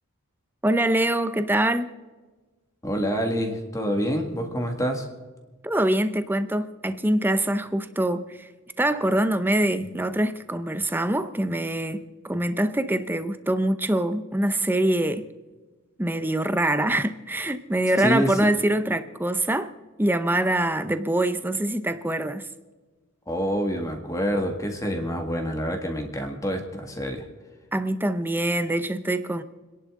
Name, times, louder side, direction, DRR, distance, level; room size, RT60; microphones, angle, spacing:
voice 1, 0.6-1.9 5.6-8.5 8.8-15.3 16.0-19.7 20.0-22.4 27.7-29.4, right 1 dB, 10° right, 0.7 m, -24 dB
voice 2, 2.8-5.1 18.0-18.4 23.3-27.2, equal, 15° left, 1.8 m, -27 dB
29.5 x 11.0 x 3.7 m
head